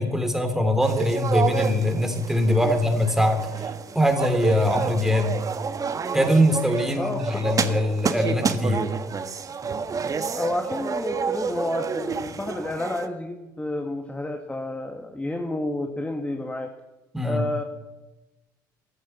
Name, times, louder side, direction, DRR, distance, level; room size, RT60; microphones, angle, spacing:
voice 1, 0.0-3.7 3.9-5.4 6.1-8.8 17.1-17.4, equal, 5° right, 6 dB, 3.5 m, -22 dB
sound 1, 0.8-13.1, right 5 dB, 35° right, 1.3 m, -29 dB
voice 2, 6.9-7.8 10.3-16.7 17.2-17.6, left 1 dB, 10° left, 5 dB, 1.7 m, -30 dB
15.0 x 13.5 x 7.0 m, 1.1 s
hypercardioid pair, 60°, 11 cm